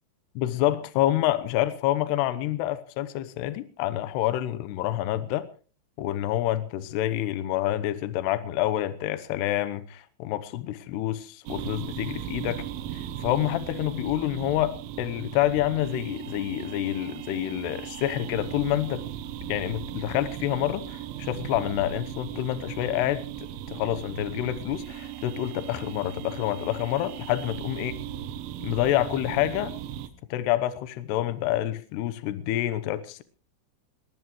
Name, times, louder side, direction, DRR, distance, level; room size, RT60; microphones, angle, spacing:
voice 1, 0.4-5.5 6.0-12.6 12.9-19.1 19.5-27.9 28.6-29.7 30.3-33.2, left 13 dB, 75° left, 12 dB, 2.7 m, -28 dB
sound 1, 11.5-30.1, right 11 dB, 85° right, 3.7 m, -37 dB
21.5 x 18.5 x 3.2 m, 0.37 s
omnidirectional pair, 5.6 m